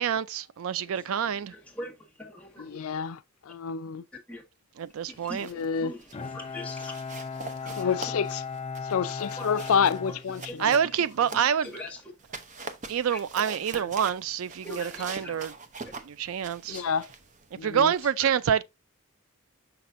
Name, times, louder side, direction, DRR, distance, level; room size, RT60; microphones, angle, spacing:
voice 1, 0.0-1.5 4.8-5.5 10.6-11.7 12.9-15.5 16.0-16.8 17.6-18.6, right 8 dB, 75° right, 0.4 m, -27 dB
voice 2, 1.1-2.8 4.3-4.4 5.1-6.0 6.3-6.9 7.6-8.0 9.4-9.5 10.5-10.6 11.3-11.5 11.7-12.0 13.7-13.8 14.6-15.4 16.7-16.8, left 1 dB, 5° left, 1.8 m, -42 dB
voice 3, 2.6-3.2 3.5-4.0 5.4-5.9 7.8-8.4 8.9-10.7 16.7-17.1 17.5-17.9, left 6 dB, 85° left, 0.4 m, -28 dB
sound 1, 5.0-5.7 6.0-6.3 6.7-11.8 12.2-18.1, right 4 dB, 35° right, 0.7 m, -43 dB
Bowed string instrument, 6.1-11.0, left 5 dB, 25° left, 0.4 m, -37 dB
6.6 x 5.8 x 2.6 m
head